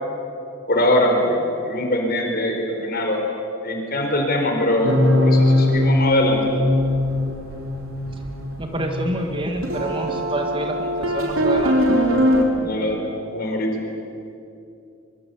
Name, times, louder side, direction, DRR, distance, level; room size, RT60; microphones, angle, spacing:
voice 1, 0.7-3.2 3.6-6.4 12.5-13.0 13.3-13.7, left 1 dB, 45° left, 2 dB, 4.7 m, -22 dB
sound 1, 4.8-12.4, left 1 dB, 90° right, 3.4 m, -21 dB
voice 2, 8.6-11.9, right 1 dB, 25° right, 3 dB, 2.0 m, -27 dB
24.0 x 23.5 x 8.6 m, 2.7 s
head